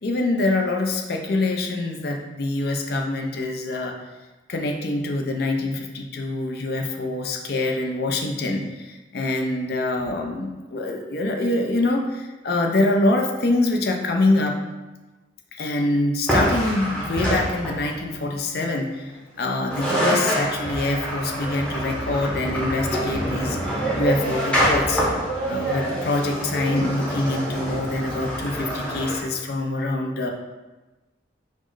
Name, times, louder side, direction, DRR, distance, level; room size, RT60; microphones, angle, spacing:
voice 1, 0.0-3.9 4.5-14.6 15.6-19.1 19.4-25.0 25.5-30.3, left 2 dB, 55° left, 2 dB, 0.4 m, -25 dB
sound 1, 16.3-18.0 19.4-19.5 19.7-29.2, right 1 dB, 5° left, 0.7 m, -26 dB
4.1 x 2.1 x 4.5 m, 1.1 s
head